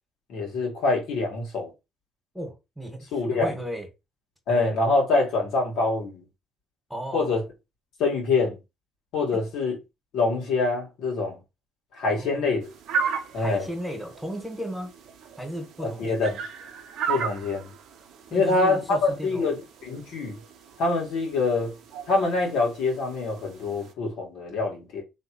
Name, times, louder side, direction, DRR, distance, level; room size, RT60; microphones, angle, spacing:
voice 1, 0.3-1.7 3.1-3.5 4.5-6.2 7.1-7.4 8.0-8.6 9.1-9.8 10.1-11.4 11.9-12.7 13.3-13.7 15.8-16.3 17.1-17.7 18.3-20.4 20.8-21.7 22.1-25.0, left 3 dB, 70° left, 1.7 m, -25 dB
voice 2, 2.3-3.9 6.9-7.3 12.1-12.4 13.3-14.9 15.4-16.4 18.3-19.5, equal, 5° right, 1.5 m, -35 dB
sound 1, 12.6-23.9, right 7 dB, 70° right, 0.6 m, -36 dB
3.4 x 2.9 x 2.9 m
supercardioid pair, 65°, 0 cm